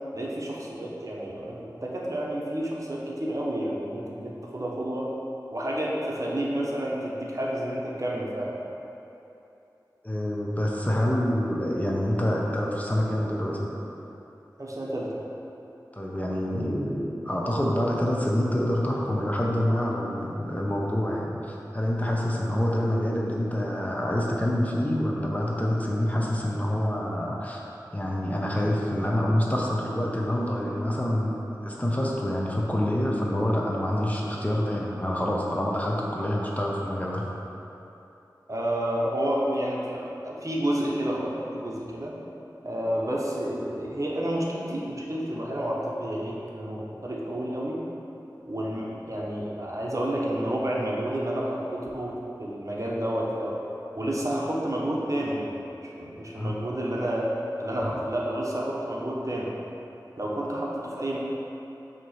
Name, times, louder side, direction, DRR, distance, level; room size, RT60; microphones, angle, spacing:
voice 1, 0.1-5.1 5.5-8.5 14.6-15.2 38.5-42.2 42.6-47.8 48.4-52.1 52.4-53.6 53.9-55.5 56.0-57.3 57.6-59.5 60.2-61.2, right 1 dB, 45° right, -4 dB, 0.9 m, -30 dB
voice 2, 10.0-13.7 15.9-27.6 27.9-37.3 56.4-56.6 57.8-57.9, left 1 dB, 20° left, -3 dB, 0.7 m, -27 dB
6.1 x 2.9 x 5.6 m, 3.0 s
wide cardioid pair, 50°, 7 cm